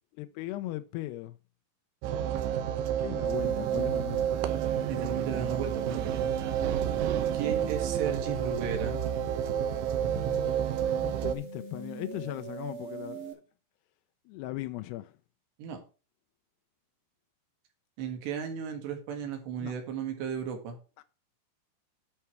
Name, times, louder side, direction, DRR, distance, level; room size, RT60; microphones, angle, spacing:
voice 1, 0.1-1.4 3.0-4.3 11.0-13.4 14.3-15.1 19.6-19.7 21.0-21.1, left 16 dB, 85° left, 2.4 m, -38 dB
sound 1, 2.0-11.4, right 10 dB, 85° right, 3.3 m, -30 dB
sound 2, 3.3-13.3, right 2 dB, 40° right, 1.1 m, -42 dB
voice 2, 4.9-6.3 7.3-9.0 15.6-15.8 18.0-20.8, right 7 dB, 70° right, 3.7 m, -35 dB
11.0 x 5.8 x 4.6 m
omnidirectional pair, 5.4 m